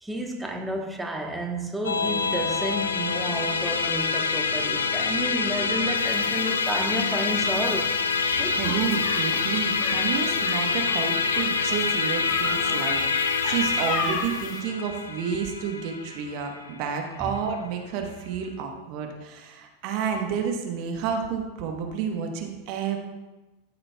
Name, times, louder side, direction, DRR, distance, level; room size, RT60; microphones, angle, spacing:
voice 1, 0.0-7.9 8.4-8.8 17.2-17.3, right 1 dB, 5° right, 1 dB, 1.1 m, -31 dB
Musical instrument, 1.8-17.4, left 5 dB, 80° left, 0.5 m, -26 dB
sound 1, 5.9-14.6, left 3 dB, 30° left, 1.3 m, -36 dB
voice 2, 8.4-23.0, right 7 dB, 50° right, 3 dB, 1.1 m, -30 dB
13.5 x 6.5 x 2.3 m, 1.1 s
figure-of-eight pair, 90°, 0 cm